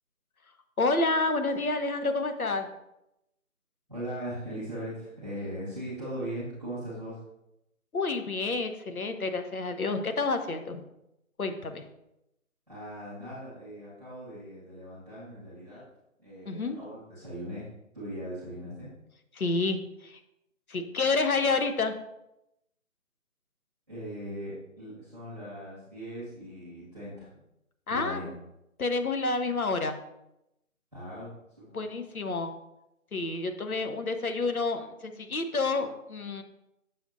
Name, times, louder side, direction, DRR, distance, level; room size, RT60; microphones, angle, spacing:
voice 1, 0.8-2.7 7.9-10.8 11.4-11.8 16.5-16.8 19.3-20.2 20.7-21.9 27.9-28.2 28.8-30.0 31.7-32.5 33.1-36.4, left 3 dB, 85° left, 7 dB, 1.1 m, -29 dB
voice 2, 3.9-7.2 12.7-15.8 16.2-17.7 17.9-18.9 23.9-27.3 27.9-28.3 30.9-31.3 31.6-31.8, right 1 dB, 5° left, -11 dB, 1.5 m, -39 dB
6.9 x 6.0 x 2.7 m, 0.87 s
figure-of-eight pair, 165°, 42 cm